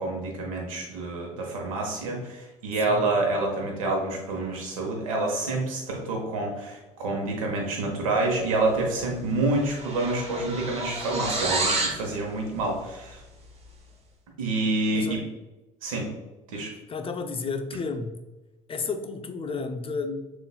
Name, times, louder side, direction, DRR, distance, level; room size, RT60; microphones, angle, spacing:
voice 1, 0.0-13.2 14.4-15.2 15.8-16.1 16.5-16.7, right 2 dB, 85° right, 0 dB, 0.9 m, -28 dB
sound 1, 8.9-9.1 9.3-12.0, right 2 dB, 35° right, 1.0 m, -29 dB
voice 2, 14.9-15.2 16.9-18.1 18.7-20.4, left 4 dB, 35° left, 8 dB, 0.5 m, -32 dB
6.6 x 2.5 x 2.3 m, 1.1 s
hypercardioid pair, 60°, 17 cm